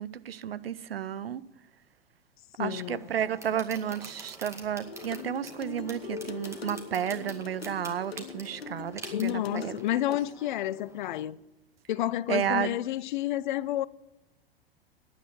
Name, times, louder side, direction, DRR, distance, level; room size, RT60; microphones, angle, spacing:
voice 1, 0.0-1.4 2.6-9.8 10.1-10.2 12.3-12.7, right 9 dB, 75° right, 0.7 m, -32 dB
voice 2, 2.6-3.1 9.1-11.4 11.9-13.9, left 13 dB, 55° left, 0.5 m, -30 dB
sound 1, 2.7-11.3, right 2 dB, 10° right, 2.1 m, -48 dB
sound 2, 4.8-10.2, left 6 dB, 80° left, 1.0 m, -41 dB
10.0 x 8.6 x 7.8 m
figure-of-eight pair, 90°, 30 cm